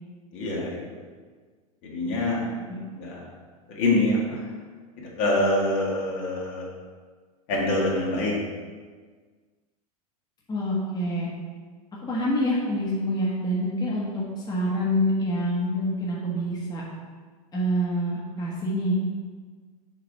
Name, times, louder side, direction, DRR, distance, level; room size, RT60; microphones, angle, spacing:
voice 1, 0.3-0.8 1.8-2.5 2.9-3.2 3.7-4.4 5.0-6.7 7.5-8.4, left 1 dB, 60° left, -3 dB, 1.8 m, -25 dB
voice 2, 10.5-11.3 12.0-16.8 17.5-19.0, equal, 20° left, -5 dB, 1.3 m, -26 dB
6.5 x 3.1 x 5.3 m, 1.5 s
hypercardioid pair, 105°, 19 cm